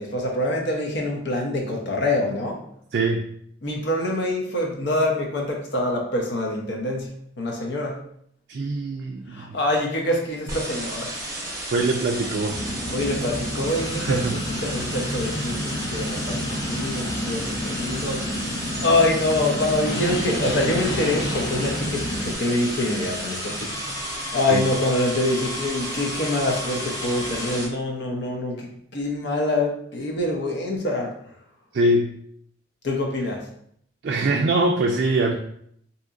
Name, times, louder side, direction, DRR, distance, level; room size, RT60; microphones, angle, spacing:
voice 1, 0.0-2.6 3.6-8.0 9.3-11.2 12.9-18.5 18.8-23.8 24.3-31.2 32.8-33.5, left 1 dB, 60° left, 1 dB, 0.7 m, -25 dB
voice 2, 2.9-3.3 8.5-9.6 11.7-12.6 14.1-14.4 24.5-24.6 31.7-32.1 34.0-35.4, right 2 dB, 55° right, 1 dB, 0.3 m, -23 dB
sound 1, 10.5-27.7, right 1 dB, 15° right, 0.8 m, -33 dB
sound 2, 12.5-22.3, left 1 dB, 85° left, 1.0 m, -30 dB
sound 3, 13.5-27.7, left 2 dB, 20° left, 0.3 m, -38 dB
3.9 x 2.8 x 2.4 m, 0.68 s
head